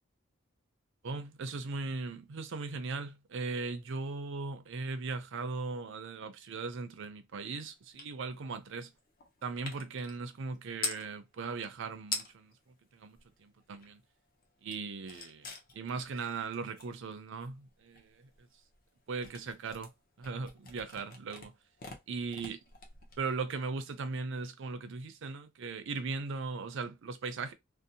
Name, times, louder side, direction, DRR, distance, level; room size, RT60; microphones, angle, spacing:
voice 1, 1.0-8.9 9.4-12.5 12.9-14.0 14.6-18.3 19.1-19.9 20.2-21.5 22.1-22.6 23.2-27.5, right 4 dB, 60° right, 0.4 m, -38 dB
sound 1, 8.0-8.1 8.4-11.1 11.7-11.8 12.0-12.6 13.0-14.1 14.4-23.6, left 4 dB, 45° left, 0.6 m, -44 dB
2.6 x 2.0 x 2.7 m
head